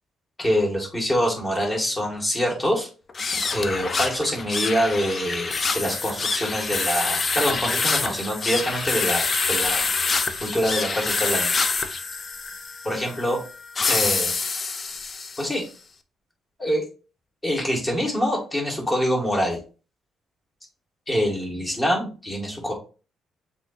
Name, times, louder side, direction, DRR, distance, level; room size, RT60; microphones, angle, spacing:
voice 1, 0.4-2.9 3.5-9.9 10.4-11.5 12.9-13.4 13.9-14.3 15.4-15.6 16.6-16.9 17.4-19.6 21.1-22.7, equal, 20° left, -1 dB, 1.9 m, -25 dB
sound 1, 3.1-15.6, left 4 dB, 40° left, 0.5 m, -26 dB
7.2 x 2.8 x 2.5 m, 0.35 s
cardioid pair, 90°, 0 cm